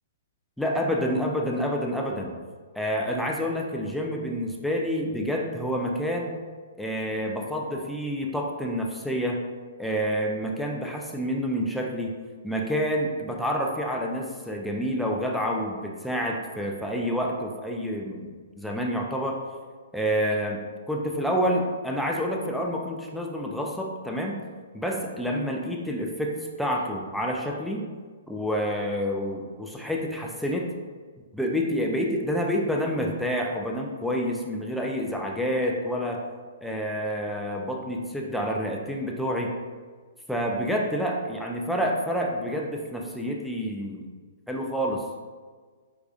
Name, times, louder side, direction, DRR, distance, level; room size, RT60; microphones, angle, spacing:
voice 1, 0.6-2.4 2.7-6.4 6.8-9.5 9.8-12.2 12.4-19.4 19.9-20.6 20.9-24.4 24.7-27.9 28.3-30.7 31.3-36.2 36.6-39.6 40.3-44.1 44.5-45.0, equal, ahead, -1 dB, 0.3 m, -28 dB
4.7 x 2.4 x 2.4 m, 1.5 s
hypercardioid pair, 125°, 0 cm